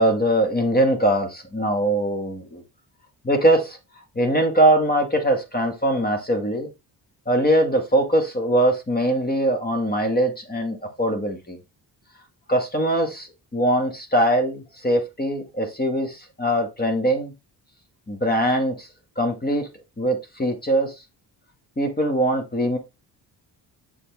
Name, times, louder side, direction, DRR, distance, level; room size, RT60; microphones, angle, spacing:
voice 1, 0.0-2.6 3.2-3.8 4.2-6.7 7.3-11.6 12.5-13.3 13.5-17.3 18.1-18.9 19.2-19.7 20.0-20.9 21.8-22.8, right 1 dB, 20° left, 4 dB, 1.8 m, -22 dB
7.2 x 4.2 x 3.5 m, 0.24 s
cardioid pair, 75°, 42 cm